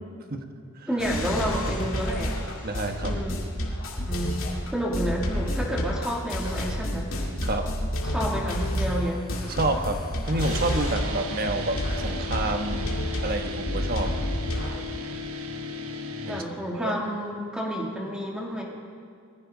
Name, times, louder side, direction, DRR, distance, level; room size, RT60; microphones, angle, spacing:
voice 1, 0.9-2.4 3.0-3.4 4.0-4.4 4.7-7.1 8.0-9.2 16.3-18.6, equal, 5° right, -3 dB, 2.6 m, -30 dB
sound 1, 1.0-11.2 11.5-14.8, equal, 65° left, 2.6 m, -29 dB
voice 2, 2.6-3.2 7.4-7.7 9.5-10.0 10.3-13.0 13.2-14.2 16.2-16.4 16.8-17.0, right 2 dB, 45° right, 5 dB, 1.3 m, -28 dB
sound 2, 10.4-16.4, left 2 dB, 85° right, 1.3 m, -35 dB
22.5 x 15.5 x 4.0 m, 2.4 s
head